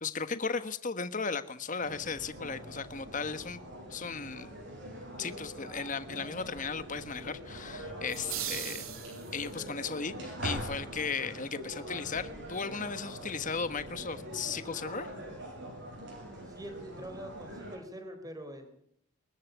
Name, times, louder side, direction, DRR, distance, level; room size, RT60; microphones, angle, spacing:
voice 1, 0.0-3.6 3.9-4.5 5.2-8.9 9.3-15.1, left 5 dB, 35° left, 12 dB, 1.4 m, -36 dB
sound 1, 1.8-17.8, equal, 55° right, 7.7 m, -43 dB
sound 2, 8.1-9.7, right 10 dB, 75° right, 2.9 m, -39 dB
voice 2, 16.4-18.8, right 1 dB, 15° right, 7 dB, 4.2 m, -44 dB
23.0 x 14.5 x 9.5 m, 0.67 s
head